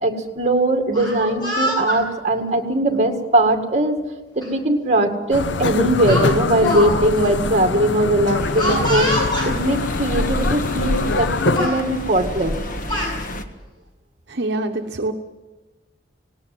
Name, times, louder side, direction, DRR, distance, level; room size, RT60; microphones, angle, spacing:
voice 1, 0.0-4.0 4.4-9.1 9.4-12.5, right 1 dB, 35° right, 5 dB, 2.1 m, -20 dB
Speech, 0.8-2.0 2.9-3.1 4.4-4.5 4.9-5.1 6.1-6.9 7.2-7.3 8.6-9.5 10.4-10.5 10.9-11.2 11.5-11.8 12.6-13.1, equal, 25° left, 7.8 m, -25 dB
sound 1, 5.3-11.7, left 4 dB, 80° left, 0.6 m, -24 dB
sound 2, 8.4-13.4, equal, 45° left, 1.5 m, -28 dB
voice 2, 14.3-15.1, right 2 dB, 65° right, 3 dB, 1.0 m, -25 dB
18.5 x 18.5 x 7.8 m, 1.2 s
head